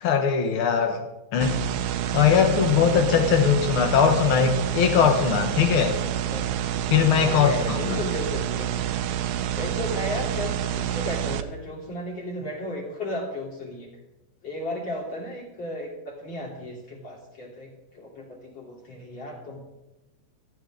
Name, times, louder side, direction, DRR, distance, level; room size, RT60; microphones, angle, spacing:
voice 1, 0.0-1.0 1.3-1.6 2.1-6.0 6.9-8.0, left 7 dB, 65° left, 5 dB, 1.3 m, -20 dB
sound 1, 1.4-11.4, right 10 dB, 90° right, 2.6 m, -28 dB
voice 2, 7.2-8.7 9.5-13.9 14.4-19.6, left 1 dB, 35° left, -2 dB, 4.1 m, -34 dB
18.5 x 14.0 x 3.9 m, 0.99 s
omnidirectional pair, 4.0 m